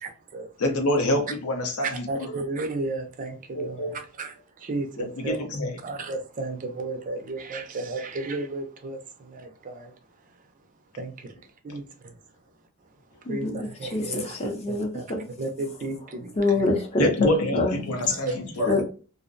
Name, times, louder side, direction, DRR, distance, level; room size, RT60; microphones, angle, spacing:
voice 1, 0.0-0.5 1.8-5.4 5.8-9.9 11.0-11.3 11.6-12.2 13.3-14.4 14.7-15.0 15.4-16.3 16.6-16.7 18.1-18.8, right 2 dB, 35° right, 0.4 m, -33 dB
voice 2, 0.6-2.3 3.5-4.0 5.0-5.7 17.0-18.7, left 1 dB, 70° left, 0.6 m, -26 dB
voice 3, 13.2-15.2 16.3-17.1 17.5-17.8 18.7-18.8, left 2 dB, 30° left, 0.5 m, -26 dB
2.5 x 2.0 x 2.5 m
head